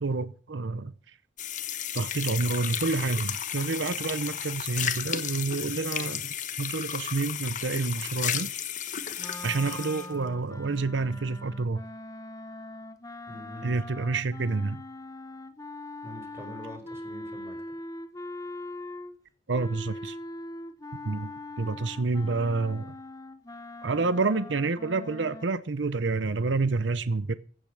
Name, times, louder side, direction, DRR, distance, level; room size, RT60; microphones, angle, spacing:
voice 1, 0.0-0.9 1.9-8.5 9.4-11.8 13.6-14.8 19.5-20.2 21.0-21.3 21.6-22.9 23.8-27.3, right 3 dB, 90° right, 0.7 m, -28 dB
sound 1, 1.4-10.1, left 9 dB, 45° left, 1.1 m, -33 dB
sound 2, 9.2-19.2 19.5-25.5, left 2 dB, 20° left, 1.0 m, -41 dB
voice 2, 13.3-13.8 16.0-17.6, equal, 15° right, 4.7 m, -44 dB
15.5 x 8.7 x 6.4 m
head